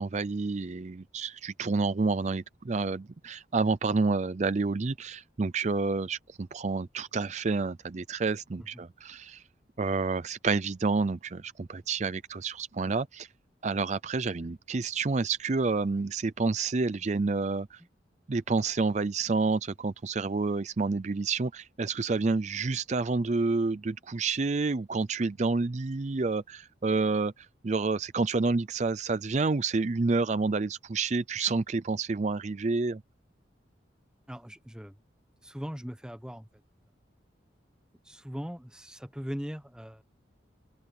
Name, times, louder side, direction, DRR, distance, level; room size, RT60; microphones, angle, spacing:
voice 1, 0.0-9.4 9.8-13.3 13.6-17.8 18.3-33.0, right 3 dB, 40° right, 0.5 m, -29 dB
voice 2, 34.3-35.0 35.4-36.5 38.0-40.0, equal, 5° right, 0.9 m, -39 dB
head